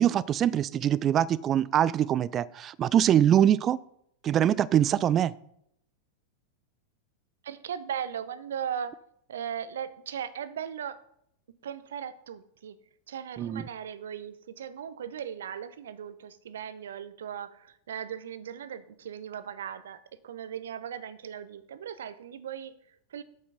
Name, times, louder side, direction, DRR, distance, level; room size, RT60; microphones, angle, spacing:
voice 1, 0.0-3.8 4.2-5.3 13.4-13.6, right 10 dB, 30° right, 0.3 m, -23 dB
voice 2, 7.4-9.0 9.3-11.0 11.6-12.8 13.1-23.2, right 8 dB, 65° right, 0.7 m, -38 dB
8.4 x 6.6 x 5.0 m
figure-of-eight pair, 90°, 0 cm